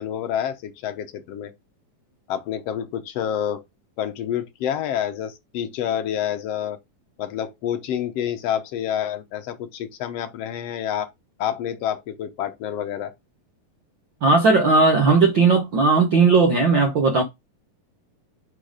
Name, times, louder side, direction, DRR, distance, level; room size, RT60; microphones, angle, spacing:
voice 1, 0.0-1.5 2.3-3.6 4.0-6.8 7.2-11.1 11.4-13.1, left 9 dB, 70° left, 1.5 m, -28 dB
voice 2, 14.2-17.2, right 4 dB, 65° right, 1.1 m, -17 dB
6.0 x 5.8 x 5.0 m
omnidirectional pair, 4.0 m